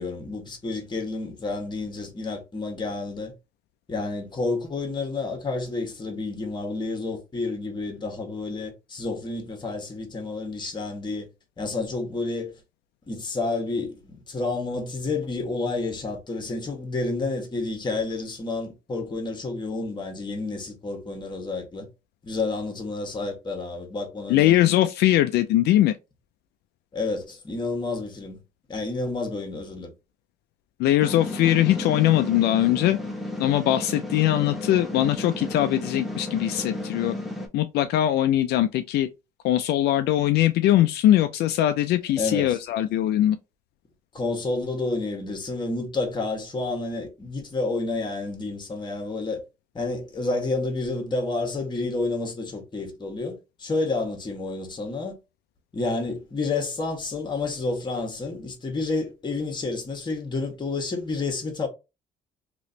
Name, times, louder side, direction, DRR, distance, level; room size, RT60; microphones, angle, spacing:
voice 1, 0.0-3.3 3.9-11.3 11.6-12.5 13.1-21.9 22.2-24.7 26.9-28.4 28.7-29.9 32.7-32.8 42.2-42.6 44.1-49.4 49.7-55.2 55.7-61.7, left 3 dB, 25° left, 1.4 m, -30 dB
voice 2, 24.3-26.0 30.8-33.0 33.4-37.1 37.5-39.1 39.4-43.4, left 13 dB, 75° left, 0.4 m, -21 dB
sound 1, 31.0-37.5, left 1 dB, ahead, 1.0 m, -33 dB
3.1 x 3.0 x 2.7 m
cardioid pair, 110°, 17 cm